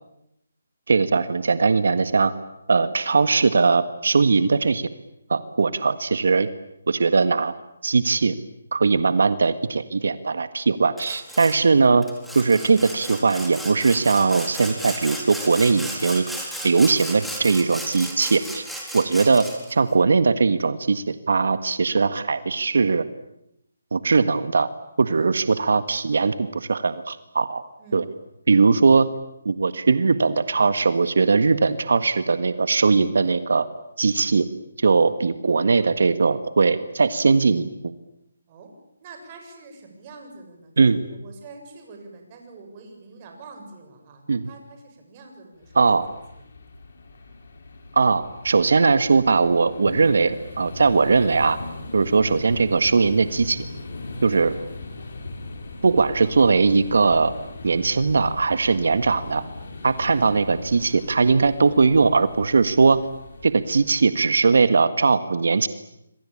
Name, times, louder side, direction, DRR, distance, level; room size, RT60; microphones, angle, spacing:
voice 1, 0.9-2.3 2.7-4.9 5.3-6.5 6.9-7.5 7.8-8.3 8.7-12.1 12.3-16.2 16.6-18.6 18.9-23.0 23.9-24.7 25.0-27.6 27.9-28.0 28.5-29.1 29.4-33.7 34.0-34.5 34.8-37.7 40.8-41.0 44.3-44.5 45.7-46.1 47.9-51.6 51.9-53.6 54.2-54.5 55.8-57.3 57.6-59.4 59.8-63.0 63.4-65.7, right 4 dB, 70° right, 12 dB, 1.7 m, -20 dB
Sawing, 11.0-11.6 12.0-19.7, right 1 dB, ahead, 4.1 m, -35 dB
voice 2, 27.8-28.1 38.5-38.7 39.0-45.9 46.3-46.5 51.9-52.2, right 3 dB, 30° right, 4 dB, 7.2 m, -45 dB
sound 1, 45.6-64.7, left 2 dB, 60° left, 6.7 m, -39 dB
27.0 x 23.5 x 8.8 m, 0.81 s
hypercardioid pair, 160°, 0 cm